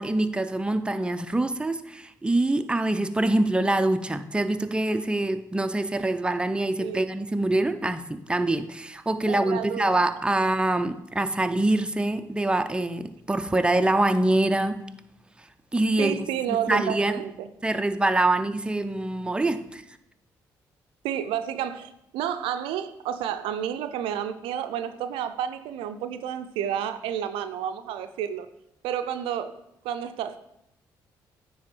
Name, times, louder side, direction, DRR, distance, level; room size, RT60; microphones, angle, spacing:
voice 1, 0.0-14.8 15.7-17.1 17.6-19.8, right 2 dB, 10° right, 0.6 m, -25 dB
voice 2, 9.3-10.1 16.0-17.5 21.0-28.5 28.8-29.6 29.8-30.4, right 9 dB, 80° right, 0.4 m, -30 dB
9.4 x 3.5 x 4.4 m
supercardioid pair, 55°, 9 cm